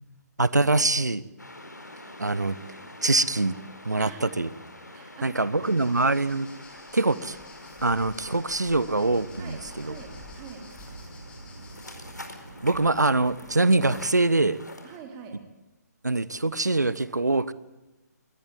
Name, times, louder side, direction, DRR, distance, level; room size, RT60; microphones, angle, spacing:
voice 1, 0.4-1.2 2.2-2.6 3.0-3.5 3.8-4.5 5.2-6.5 6.9-7.4 7.8-9.9 12.6-14.6 16.0-17.5, right 2 dB, 75° right, 18 dB, 1.2 m, -24 dB
sound 1, 1.4-15.0, left 1 dB, 80° left, 4.6 m, -46 dB
voice 2, 4.0-4.5 4.9-5.9 9.4-10.6 14.8-15.4, right 6 dB, 20° right, 4 dB, 3.9 m, -45 dB
sound 2, 5.6-11.9, left 4 dB, 10° left, 5.3 m, -51 dB
sound 3, 9.0-14.0, right 3 dB, 50° right, 5.5 m, -46 dB
22.5 x 19.0 x 7.5 m, 1.0 s
figure-of-eight pair, 140°, 9 cm